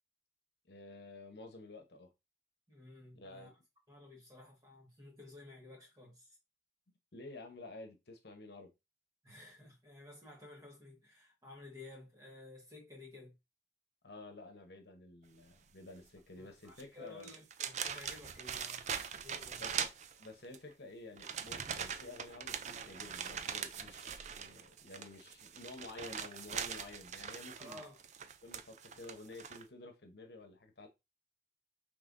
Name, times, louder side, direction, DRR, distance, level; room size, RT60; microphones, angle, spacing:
voice 1, 0.7-2.1 3.1-3.5 7.1-8.7 14.0-17.3 19.6-19.9 20.2-27.8 28.4-30.9, left 2 dB, 65° left, 0.9 m, -51 dB
voice 2, 2.7-3.5 3.9-6.4 9.2-13.3 16.4-18.9 19.2-19.6 27.6-28.0, left 2 dB, 20° right, 1.5 m, -54 dB
sound 1, 16.7-16.8 17.2-20.6 21.2-29.6, right 7 dB, 40° right, 0.4 m, -42 dB
5.5 x 3.3 x 2.6 m
head